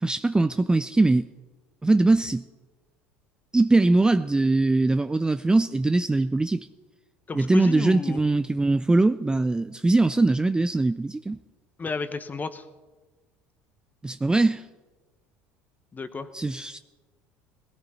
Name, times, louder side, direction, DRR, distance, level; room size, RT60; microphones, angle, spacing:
voice 1, 0.0-1.3 1.8-2.4 3.5-6.7 7.3-11.4 14.0-14.6 16.3-16.8, right 2 dB, 10° right, 0.4 m, -21 dB
voice 2, 7.3-8.2 11.8-12.6 15.9-16.3, left 4 dB, 25° left, 1.2 m, -32 dB
18.5 x 17.0 x 4.3 m
hypercardioid pair, 70°, 7 cm